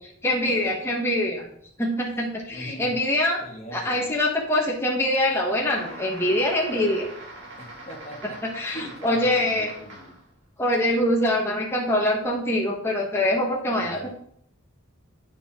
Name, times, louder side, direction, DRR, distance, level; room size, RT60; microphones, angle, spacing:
voice 1, 0.2-1.5 1.8-3.4 3.7-7.1 8.4-9.7 10.6-14.1, left 1 dB, 10° left, -2 dB, 1.2 m, -24 dB
voice 2, 2.5-2.9 3.4-4.1 7.6-8.4 8.7-10.2 13.7-14.1, equal, 35° left, -2 dB, 1.8 m, -40 dB
sound 1, 5.3-10.3, right 1 dB, 60° right, 2.1 m, -43 dB
9.1 x 6.9 x 3.6 m, 0.68 s
head